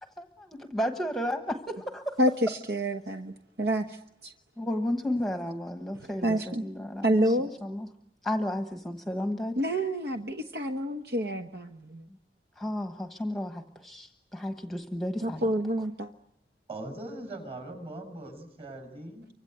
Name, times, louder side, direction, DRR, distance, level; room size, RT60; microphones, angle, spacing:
voice 1, 0.0-2.2 4.6-7.3 7.6-7.9 8.2-9.6 12.6-15.5, left 1 dB, ahead, 5 dB, 1.2 m, -33 dB
voice 2, 2.2-4.3 6.2-6.7 7.0-7.5 9.6-12.1 15.2-16.1, equal, 65° right, 5 dB, 1.2 m, -28 dB
voice 3, 16.7-19.3, right 2 dB, 35° right, 4 dB, 6.9 m, -40 dB
29.5 x 25.0 x 8.0 m, 0.74 s
head